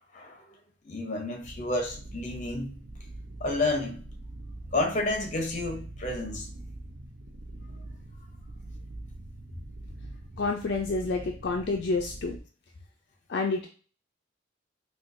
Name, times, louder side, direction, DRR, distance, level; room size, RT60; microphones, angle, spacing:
voice 1, 0.8-2.7 3.4-4.0 4.7-6.5, left 2 dB, 40° left, 0.8 m, -30 dB
sound 1, 1.4-12.4, right 1 dB, 55° right, 0.6 m, -43 dB
voice 2, 10.4-12.4 13.3-13.7, left 3 dB, 60° left, 0.4 m, -28 dB
4.3 x 2.3 x 2.6 m
head